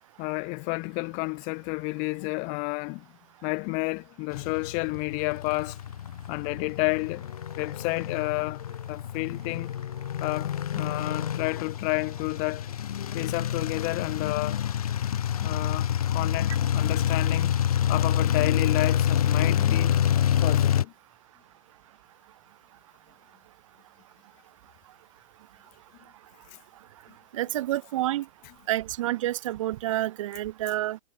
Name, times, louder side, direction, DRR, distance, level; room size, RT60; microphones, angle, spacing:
voice 1, 0.2-3.1 3.4-5.8 6.3-7.3 7.6-8.6 8.9-9.7 10.2-12.7 13.1-14.6 15.4-17.6 17.9-20.0 20.4-20.9 26.5-26.6, left 33 dB, 40° left, 3.2 m, -30 dB
sound 1, 4.3-20.8, left 10 dB, 90° left, 0.5 m, -27 dB
voice 2, 27.3-28.3 28.7-31.0, right 14 dB, 60° right, 1.2 m, -28 dB
hypercardioid pair, 130°, 18 cm